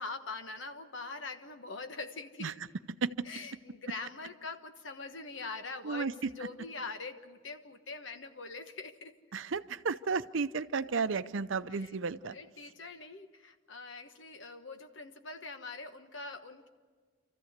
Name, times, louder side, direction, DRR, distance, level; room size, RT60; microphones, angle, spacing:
voice 1, 0.0-2.5 3.2-9.1 11.7-12.0 12.3-16.7, left 3 dB, 70° left, 7 dB, 1.3 m, -43 dB
voice 2, 9.3-12.4, right 5 dB, 75° right, 13 dB, 0.6 m, -33 dB
27.5 x 14.5 x 8.1 m, 1.5 s
head